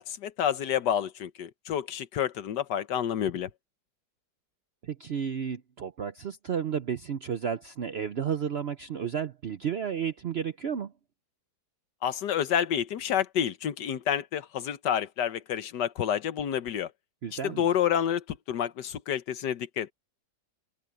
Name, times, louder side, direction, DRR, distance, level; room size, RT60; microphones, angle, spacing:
voice 1, 0.0-3.5 12.0-16.9 17.3-19.9, left 9 dB, 75° left, 1.6 m, -29 dB
voice 2, 4.8-10.9 17.2-17.7, right 8 dB, 60° right, 0.6 m, -32 dB
open air
omnidirectional pair, 1.9 m